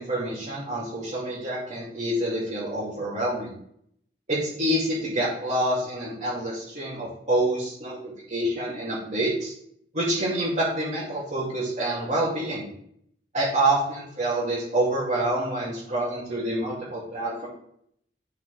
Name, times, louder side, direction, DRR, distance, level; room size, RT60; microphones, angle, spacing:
voice 1, 0.0-3.5 4.3-9.5 9.9-12.7 13.3-17.5, right 1 dB, 40° right, -9 dB, 2.5 m, -27 dB
11.5 x 4.8 x 3.5 m, 0.68 s
head